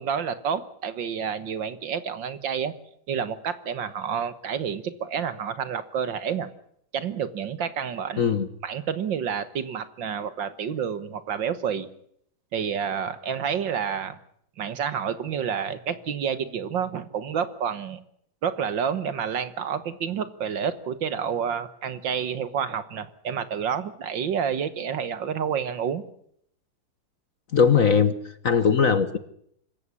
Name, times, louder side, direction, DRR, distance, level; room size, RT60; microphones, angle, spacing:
voice 1, 0.0-2.7 3.1-6.5 6.9-8.4 8.6-11.9 12.5-14.2 14.6-18.0 18.4-26.0, right 7 dB, 60° right, 14 dB, 1.9 m, -29 dB
voice 2, 8.2-8.5 27.5-28.1 28.4-29.2, left 6 dB, 45° left, 13 dB, 1.3 m, -19 dB
25.5 x 14.5 x 9.7 m, 0.70 s
omnidirectional pair, 2.3 m